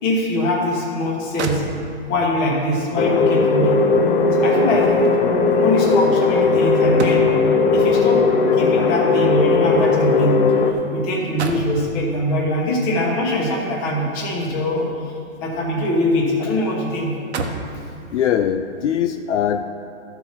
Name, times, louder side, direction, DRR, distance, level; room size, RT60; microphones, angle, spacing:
voice 1, 0.0-1.6 2.1-3.8 4.3-5.1 5.5-7.3 7.7-8.2 8.6-10.4 10.9-14.8 15.4-17.1, left 1 dB, 20° left, -2 dB, 1.1 m, -22 dB
sound 1, 1.0-1.1 1.4-2.2 3.6-7.6 8.7-10.8 11.1-11.9 13.3-14.9 15.3-16.3 16.6-16.7 17.1-17.8 18.5-18.7, right 4 dB, 55° right, 1.0 m, -34 dB
sound 2, 3.0-10.7, left 4 dB, 45° left, 0.9 m, -17 dB
voice 2, 18.1-19.6, left 9 dB, 65° left, 8 dB, 0.5 m, -21 dB
13.5 x 4.6 x 5.8 m, 2.5 s
hypercardioid pair, 170°, 39 cm